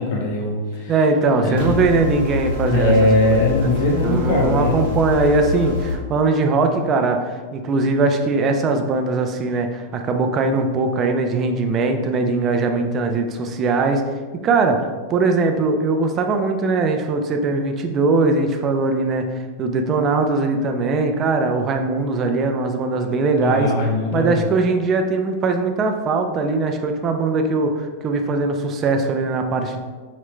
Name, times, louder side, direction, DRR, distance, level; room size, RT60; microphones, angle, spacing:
voice 1, 0.0-0.9 1.4-1.7 2.7-4.8 23.4-24.5, left 2 dB, 50° left, -2 dB, 1.0 m, -20 dB
voice 2, 0.9-3.1 3.9-14.0 14.4-19.2 19.6-23.7 24.1-29.8, right 3 dB, 25° right, 5 dB, 0.3 m, -20 dB
sound 1, 1.6-6.0, left 2 dB, 75° right, 0.8 m, -25 dB
4.8 x 2.1 x 3.0 m, 1.4 s
supercardioid pair, 165°, 0 cm